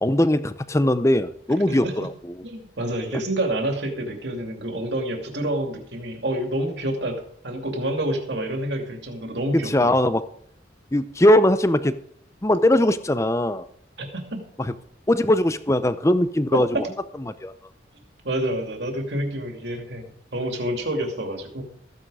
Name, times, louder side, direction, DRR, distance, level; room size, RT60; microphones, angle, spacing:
voice 1, 0.0-2.3 3.1-3.2 9.5-10.2 10.9-12.0 12.4-13.7 14.6-14.7 15.1-16.9 17.3-17.5, left 1 dB, 15° left, 13 dB, 0.6 m, -20 dB
voice 2, 2.4-10.0 14.0-14.4 16.5-16.6 18.2-20.1 20.3-21.6, right 1 dB, 70° right, 3 dB, 2.6 m, -28 dB
14.5 x 9.5 x 4.9 m, 0.66 s
head